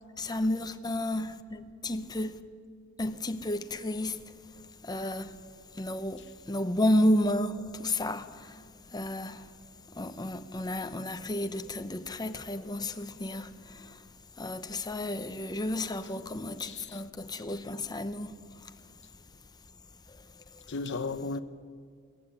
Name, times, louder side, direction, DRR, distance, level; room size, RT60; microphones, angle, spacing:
voice 1, 0.2-2.4 3.0-4.2 4.8-5.3 5.8-8.6 8.9-9.4 9.9-14.0 14.4-18.4, left 1 dB, 20° left, 0.8 m, -31 dB
voice 2, 16.6-17.0 20.7-21.4, left 3 dB, 60° left, 0.7 m, -36 dB
22.5 x 15.5 x 9.7 m
head